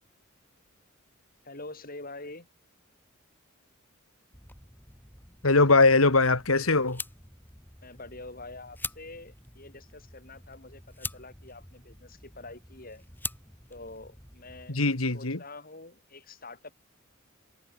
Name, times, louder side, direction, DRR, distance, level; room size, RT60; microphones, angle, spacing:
voice 1, 1.4-2.5 7.8-13.0 13.7-14.8 15.1-16.7, left 2 dB, 45° left, 7.9 m, -45 dB
sound 1, 4.3-14.7, left 3 dB, 10° left, 6.6 m, -44 dB
voice 2, 5.4-7.0 14.7-15.4, left 3 dB, 85° left, 2.5 m, -21 dB
head